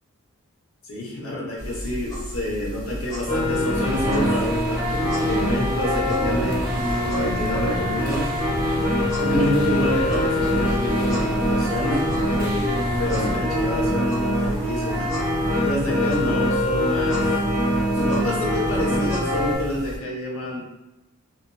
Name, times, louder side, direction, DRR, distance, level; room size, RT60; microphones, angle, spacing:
voice 1, 0.8-8.4 9.2-15.1 15.6-17.4 17.9-20.6, left 1 dB, 70° left, -3 dB, 0.9 m, -28 dB
sound 1, 1.6-20.0, equal, 15° left, 0.8 m, -35 dB
sound 2, 3.3-19.6, equal, 35° left, 1.0 m, -24 dB
sound 3, 3.7-13.4, right 1 dB, 40° right, 0.6 m, -32 dB
2.7 x 2.6 x 2.3 m, 0.98 s
head